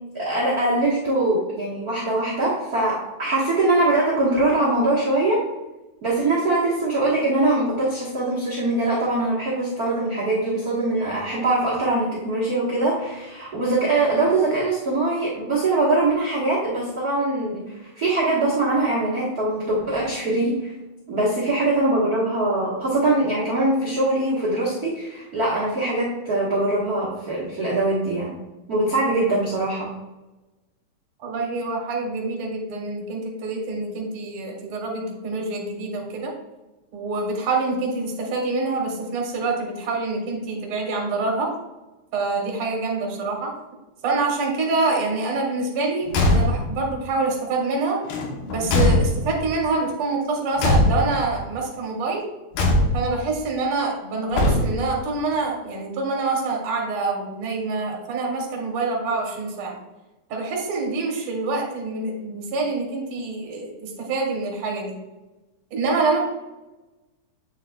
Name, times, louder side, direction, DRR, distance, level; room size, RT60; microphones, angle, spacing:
voice 1, 0.1-5.4 6.0-20.7 21.1-28.3 28.7-29.9, right 2 dB, 90° right, -6 dB, 0.8 m, -22 dB
voice 2, 31.2-36.3 36.9-41.5 42.1-43.5 44.0-48.0 48.5-52.2 52.9-59.8 60.3-65.0 65.7-66.2, right 3 dB, 55° right, 0 dB, 1.8 m, -26 dB
Car / Truck / Slam, 46.1-46.8 48.1-49.5 50.6-51.4 52.5-53.2 54.3-55.0, left 1 dB, 70° left, 2.3 m, -21 dB
8.8 x 6.7 x 2.3 m, 1.1 s
omnidirectional pair, 4.1 m